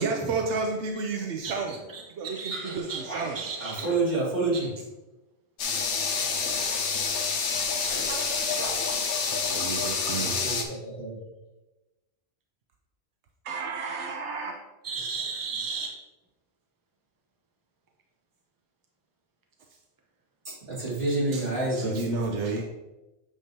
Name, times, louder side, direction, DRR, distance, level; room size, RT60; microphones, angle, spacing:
voice 1, 0.0-1.8 2.1-3.4 9.5-10.5 13.4-14.5 21.3-21.4 21.7-22.6, right 4 dB, 80° right, 2 dB, 1.0 m, -31 dB
voice 2, 2.2-4.8 7.9-9.0 10.1-11.2 20.4-22.0, right 2 dB, 55° right, -7 dB, 2.8 m, -30 dB
voice 3, 3.3-3.8 14.8-15.9, right 5 dB, 20° right, 0 dB, 0.8 m, -33 dB
sound 1, 5.6-10.6, left 5 dB, 90° left, 1.2 m, -28 dB
8.7 x 5.0 x 2.8 m, 1.0 s
omnidirectional pair, 1.2 m